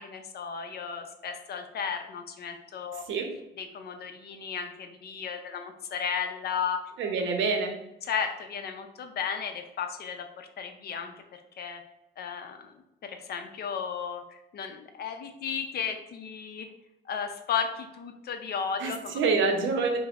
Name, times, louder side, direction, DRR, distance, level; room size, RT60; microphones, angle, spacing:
voice 1, 0.0-3.0 3.6-6.8 8.0-11.1 11.6-11.8 12.2-12.7 13.0-16.7 17.1-19.1, left 7 dB, 55° left, 6 dB, 0.5 m, -34 dB
voice 2, 7.0-7.7 18.8-20.0, right 4 dB, 75° right, 4 dB, 0.6 m, -26 dB
5.0 x 2.0 x 2.3 m, 0.88 s
cardioid pair, 90°, 20 cm